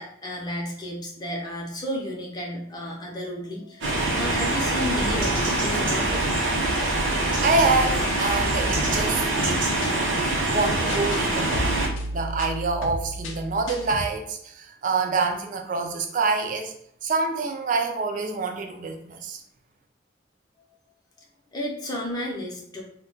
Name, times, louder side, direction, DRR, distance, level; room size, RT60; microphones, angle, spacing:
voice 1, 0.0-6.2 21.5-22.8, equal, 20° left, -2 dB, 0.5 m, -32 dB
sound 1, 3.8-11.9, right 2 dB, 65° right, 0.7 m, -24 dB
voice 2, 7.4-11.6 12.1-16.7 17.0-19.4, right 3 dB, 40° right, 4 dB, 0.3 m, -26 dB
sound 2, 8.3-10.0 10.7-11.2 11.5-14.1, equal, 70° left, 0.4 m, -33 dB
2.2 x 2.2 x 3.8 m, 0.71 s
head